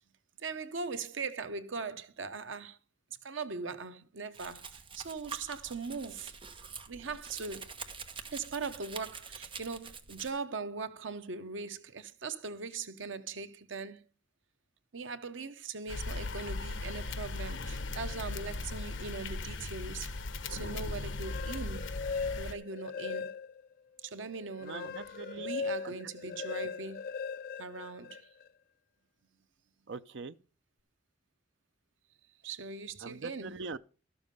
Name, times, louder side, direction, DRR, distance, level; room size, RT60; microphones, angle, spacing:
voice 1, 0.4-2.8 3.2-6.4 6.9-7.7 8.3-14.0 14.9-20.1 20.5-21.9 22.4-23.3 24.0-27.1 27.6-28.3 32.4-33.6, right 4 dB, 85° right, 1.0 m, -40 dB
Domestic sounds home sounds, 4.3-10.3, right 5 dB, 30° right, 1.2 m, -46 dB
sound 1, 15.9-22.5, left 3 dB, 80° left, 1.1 m, -38 dB
sound 2, 21.0-23.7 24.2-28.5, left 5 dB, 50° left, 0.5 m, -39 dB
voice 2, 24.6-25.5 25.8-26.0 29.9-30.3 33.0-33.8, right 4 dB, 65° right, 0.7 m, -42 dB
13.0 x 7.1 x 5.3 m
head